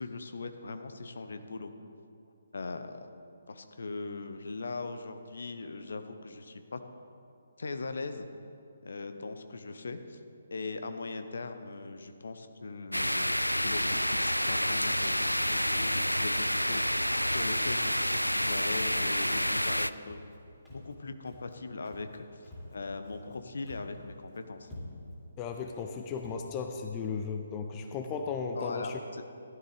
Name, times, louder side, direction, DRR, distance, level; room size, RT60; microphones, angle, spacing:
voice 1, 0.0-1.7 2.5-3.1 3.5-6.8 7.6-8.3 8.8-10.2 10.5-16.9 17.2-20.2 20.7-24.7 28.5-29.2, left 3 dB, 55° left, 8 dB, 0.8 m, -40 dB
sound 1, 12.9-19.9, equal, 90° left, 0.3 m, -29 dB
Walk footsteps, 20.0-20.4 20.7-21.0 21.3-21.6 21.9-22.2 22.4-23.4 23.6-24.0 24.3-24.4 24.6-25.2 25.7-25.8 26.2-26.4, left 1 dB, 5° left, 2.9 m, -47 dB
voice 2, 25.4-29.0, left 5 dB, 20° left, 5 dB, 0.6 m, -35 dB
14.5 x 12.0 x 3.4 m, 2.6 s
figure-of-eight pair, 140°, 0 cm